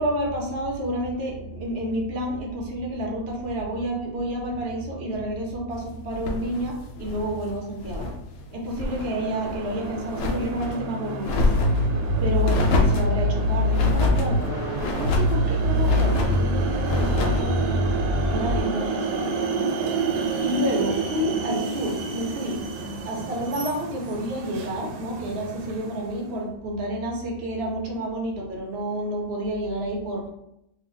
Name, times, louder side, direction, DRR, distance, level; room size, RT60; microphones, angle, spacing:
voice 1, 0.0-17.9 18.2-19.5 20.4-22.6 23.0-30.3, right 1 dB, 55° right, -1 dB, 0.8 m, -30 dB
sound 1, 6.1-8.2 8.5-9.1 9.4-10.8 11.2-11.9 12.4-13.1 13.7-14.3 14.8-15.4 15.8-16.4 16.8-17.5, left 3 dB, 85° left, 0.6 m, -27 dB
sound 2, 8.8-26.3, right 4 dB, 80° right, 1.2 m, -31 dB
sound 3, 11.5-18.6, left 1 dB, 65° left, 1.4 m, -24 dB
2.7 x 2.7 x 3.7 m, 0.80 s
omnidirectional pair, 1.9 m